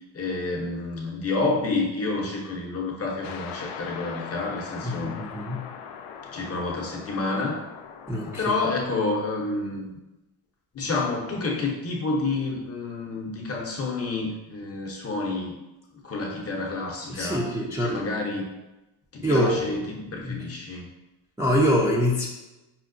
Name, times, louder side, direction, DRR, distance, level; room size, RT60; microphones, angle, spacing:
voice 1, 0.1-5.2 6.3-7.6 8.2-9.9 10.7-15.6 16.0-17.5 17.8-18.5 19.1-20.9, left 3 dB, 30° left, -1 dB, 0.7 m, -29 dB
sound 1, 3.2-9.2, left 7 dB, 70° left, 0.5 m, -40 dB
voice 2, 4.8-5.7 8.1-8.4 17.1-18.1 19.2-19.6 20.2-20.4 21.4-22.3, equal, 5° right, -5 dB, 0.5 m, -24 dB
5.6 x 2.0 x 2.5 m, 0.99 s
cardioid pair, 100°, 45 cm